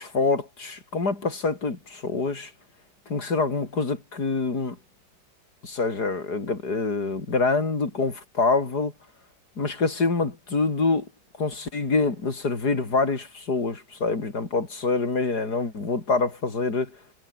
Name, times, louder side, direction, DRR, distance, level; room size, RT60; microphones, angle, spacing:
voice 1, 0.0-2.5 3.1-4.8 5.6-8.9 9.6-11.1 11.4-16.9, left 3 dB, 50° left, 4.7 m, -26 dB
omnidirectional pair, 2.2 m